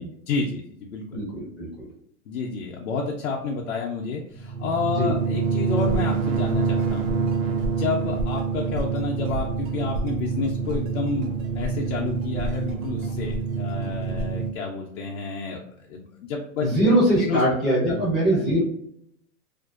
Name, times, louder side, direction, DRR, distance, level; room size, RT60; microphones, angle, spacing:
voice 1, 0.0-1.0 2.3-11.3 11.6-15.6 15.9-16.9 17.2-17.4 17.7-18.1 18.3-18.4, left 4 dB, 60° left, -2 dB, 0.5 m, -30 dB
voice 2, 1.1-1.7 4.9-5.1 16.6-18.6, right 1 dB, ahead, -10 dB, 0.3 m, -21 dB
sound 1, 4.3-14.5, right 5 dB, 65° right, 0.6 m, -26 dB
2.5 x 2.1 x 2.3 m, 0.70 s
hypercardioid pair, 140°, 44 cm